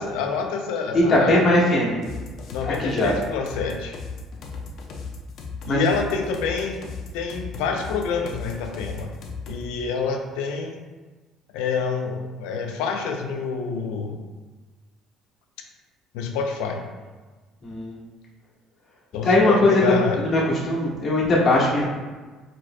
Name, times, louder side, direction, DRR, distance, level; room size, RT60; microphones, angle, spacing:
voice 1, 0.0-1.4 2.5-4.0 5.7-6.8 7.1-9.1 9.5-10.8 11.5-14.2 16.1-16.8 19.1-20.2, left 5 dB, 90° left, 3 dB, 0.6 m, -27 dB
voice 2, 0.9-2.0 2.6-3.1 5.7-5.9 17.6-18.0 19.2-21.9, left 1 dB, 45° left, -5 dB, 1.5 m, -20 dB
sound 1, 2.0-9.7, left 4 dB, 60° left, 0.8 m, -36 dB
4.9 x 4.3 x 2.2 m, 1.3 s
cardioid pair, 105°, 0 cm